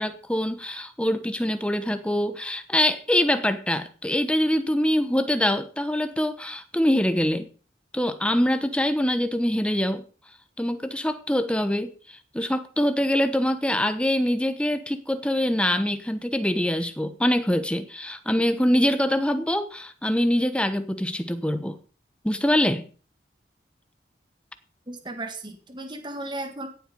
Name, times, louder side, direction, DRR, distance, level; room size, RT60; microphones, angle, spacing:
voice 1, 0.0-7.5 7.9-10.0 10.6-21.8 22.2-22.8, left 1 dB, 5° left, 10 dB, 1.0 m, -24 dB
voice 2, 24.9-26.7, right 2 dB, 25° right, 6 dB, 1.8 m, -35 dB
17.0 x 7.8 x 5.4 m, 0.40 s
head